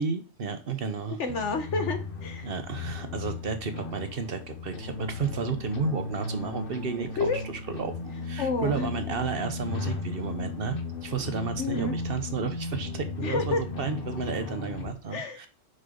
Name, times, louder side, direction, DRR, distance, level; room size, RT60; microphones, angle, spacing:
voice 1, 0.0-1.2 2.4-7.3 7.7-7.9 8.2-15.5, right 5 dB, 55° right, 8 dB, 1.1 m, -32 dB
voice 2, 1.1-2.5 7.2-7.4 8.4-8.9 11.6-12.0 13.2-13.6 15.1-15.4, left 4 dB, 85° left, 7 dB, 1.5 m, -29 dB
sound 1, 1.3-14.9, left 3 dB, 55° left, 1.1 m, -36 dB
6.5 x 5.5 x 3.8 m, 0.32 s
omnidirectional pair, 1.2 m